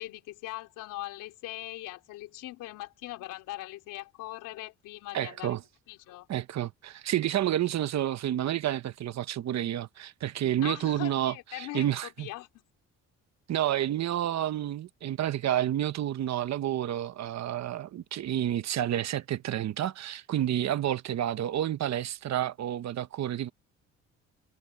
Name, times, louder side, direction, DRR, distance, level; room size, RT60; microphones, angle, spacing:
voice 1, 0.0-5.6 5.9-6.3 10.6-12.6, left 16 dB, 90° left, 3.5 m, -41 dB
voice 2, 5.1-5.6 6.3-12.3 13.5-23.5, right 12 dB, 60° right, 1.1 m, -30 dB
cardioid pair, 95°, 31 cm